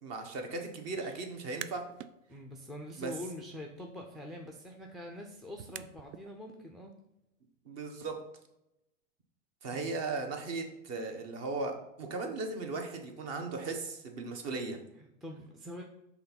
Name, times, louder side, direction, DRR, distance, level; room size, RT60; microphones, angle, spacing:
voice 1, 0.0-1.9 3.0-3.1 7.6-8.2 9.6-14.8, right 3 dB, 40° right, 5 dB, 1.3 m, -37 dB
sound 1, 1.3-2.1 2.5-6.3, right 12 dB, 60° right, 0.5 m, -49 dB
voice 2, 2.3-7.0 9.7-9.9 15.0-15.8, left 1 dB, ahead, 0 dB, 0.4 m, -45 dB
5.6 x 3.6 x 5.6 m, 0.87 s
hypercardioid pair, 110°, 39 cm